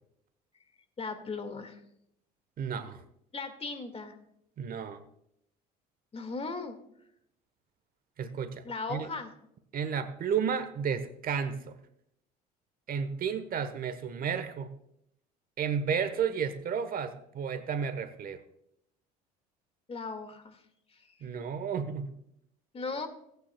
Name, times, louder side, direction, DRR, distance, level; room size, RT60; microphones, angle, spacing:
voice 1, 1.0-1.8 3.3-4.2 6.1-6.8 8.6-9.3 19.9-20.6 20.9-21.2 22.7-23.1, left 4 dB, 30° left, 8 dB, 1.9 m, -37 dB
voice 2, 2.6-3.0 4.6-5.0 8.2-9.1 9.7-11.8 12.9-14.7 15.6-18.4 21.2-22.1, right 7 dB, 45° right, 11 dB, 1.1 m, -32 dB
17.5 x 9.3 x 2.3 m, 0.74 s
hypercardioid pair, 70°, 20 cm